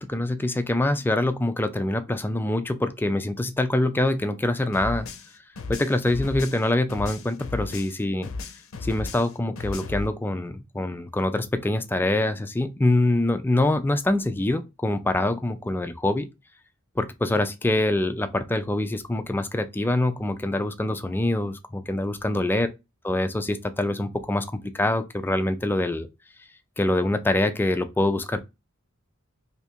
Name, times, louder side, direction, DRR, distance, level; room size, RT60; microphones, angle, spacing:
voice 1, 0.0-5.1 5.7-8.3 8.8-16.3 17.0-22.7 23.0-26.1 26.8-28.4, left 1 dB, 10° left, 0.3 m, -25 dB
sound 1, 4.7-8.0 8.2-10.1, left 3 dB, 75° left, 0.6 m, -35 dB
2.8 x 2.4 x 4.3 m
head